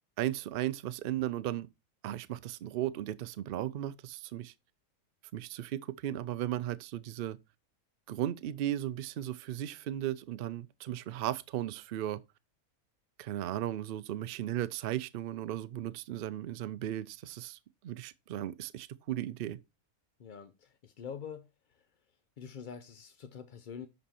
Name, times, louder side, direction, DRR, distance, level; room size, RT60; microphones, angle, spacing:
voice 1, 0.2-1.7 2.0-4.5 5.3-7.4 8.1-12.2 13.2-19.6, right 12 dB, 85° right, 0.5 m, -36 dB
voice 2, 20.2-21.5 22.4-23.9, left 7 dB, 65° left, 0.5 m, -45 dB
10.5 x 4.3 x 4.2 m
omnidirectional pair, 1.5 m